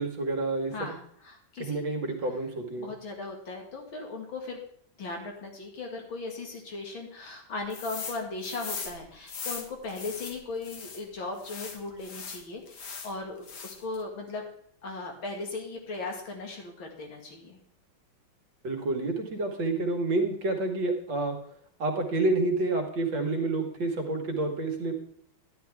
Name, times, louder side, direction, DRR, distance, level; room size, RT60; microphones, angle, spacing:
voice 1, 0.0-0.9 1.6-2.9 18.6-21.4 21.8-24.9, right 2 dB, 70° right, 3 dB, 2.3 m, -29 dB
voice 2, 0.7-1.8 2.8-4.6 5.0-14.5 14.8-17.6, left 3 dB, 85° left, 1 dB, 2.8 m, -38 dB
sound 1, 7.7-8.2 8.4-11.0 11.4-13.1 13.4-14.0, left 5 dB, 60° left, 1.8 m, -39 dB
11.5 x 10.0 x 3.5 m, 0.64 s
omnidirectional pair, 2.1 m